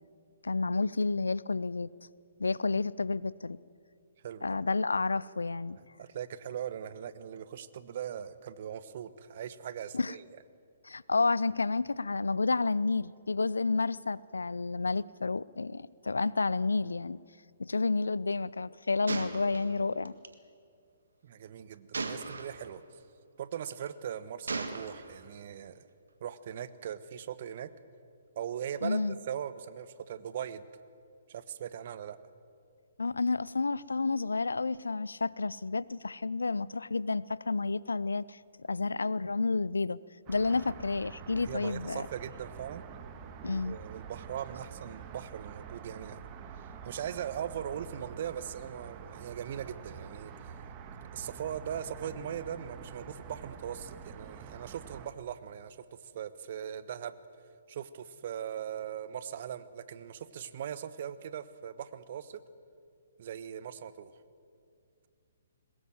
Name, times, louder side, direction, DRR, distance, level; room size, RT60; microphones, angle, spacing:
voice 1, 0.4-1.9 2.4-3.6 4.4-5.8 9.9-10.1 10.8-17.2 17.6-20.1 28.8-29.2 33.0-40.0 40.3-42.1 43.4-43.8, left 3 dB, 75° left, 21 dB, 0.5 m, -30 dB
voice 2, 4.2-4.6 6.0-10.3 21.2-23.0 23.4-25.9 26.2-27.7 28.3-30.7 31.3-32.2 41.4-42.8 43.5-46.2 46.6-50.3 51.0-55.8 56.0-57.2 57.7-62.4 63.2-64.1, right 9 dB, 50° right, 14 dB, 1.1 m, -40 dB
Gunshot gunfire, 19.1-20.3 21.9-22.7 23.5-23.9 24.5-25.3, right 3 dB, 70° right, 1.8 m, -37 dB
sound 1, 40.3-55.1, right 7 dB, 30° right, 1.7 m, -47 dB
22.5 x 20.0 x 7.7 m, 2.4 s
figure-of-eight pair, 125°, 0 cm